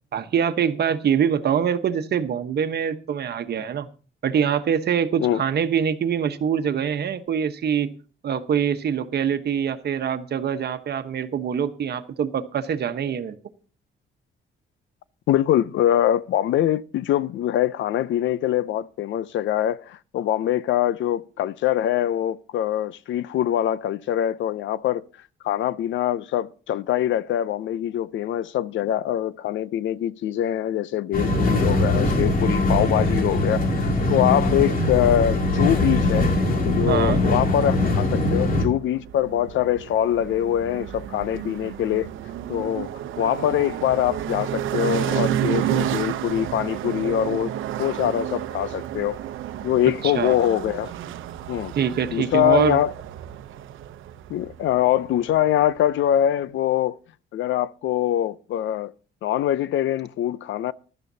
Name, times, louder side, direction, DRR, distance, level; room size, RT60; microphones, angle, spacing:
voice 1, 0.1-3.9 4.2-7.9 8.2-13.4 36.9-37.2 50.0-50.4 51.7-52.8, right 8 dB, 55° right, 1.1 m, -24 dB
voice 2, 15.3-25.0 25.4-36.3 36.6-42.1 42.5-42.9 43.2-47.5 47.8-49.2 49.6-50.9 51.5-51.7 52.1-52.9 54.3-57.0 57.3-58.9 59.2-60.7, left 11 dB, 75° left, 0.6 m, -23 dB
sound 1, 31.1-38.7, left 1 dB, 45° left, 2.6 m, -21 dB
sound 2, 38.6-55.9, right 11 dB, 85° right, 0.8 m, -31 dB
15.5 x 12.0 x 2.8 m
cardioid pair, 90°, 20 cm